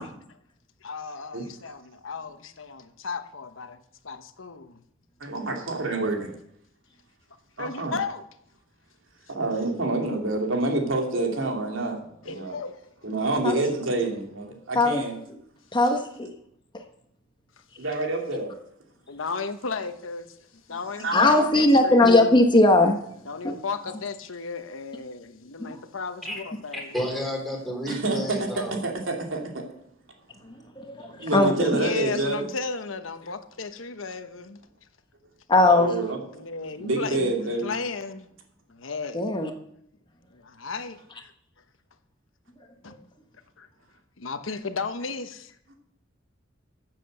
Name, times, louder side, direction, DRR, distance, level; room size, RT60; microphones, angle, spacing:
voice 1, 0.8-4.8 7.6-8.2 12.2-12.8 19.1-22.1 23.2-27.0 31.6-34.6 36.3-38.3 38.7-39.3 40.3-41.3 42.8-43.0 43.6-43.7 44.2-45.6, left 4 dB, 90° left, 1.1 m, -35 dB
voice 2, 5.2-6.3 7.6-7.9 9.3-12.6 13.0-15.2 17.8-18.5 21.0-21.3 27.9-28.4 28.7-29.6 31.1-32.5 35.6-36.2 36.8-37.7, right 2 dB, 80° right, 2.9 m, -28 dB
voice 3, 15.7-16.3 21.1-23.0 23.4-23.6 25.6-25.7 30.8-31.7 35.5-36.0 39.1-39.5, left 2 dB, 25° left, 1.2 m, -19 dB
voice 4, 26.7-28.8, equal, ahead, 3.8 m, -31 dB
15.0 x 7.6 x 6.7 m
head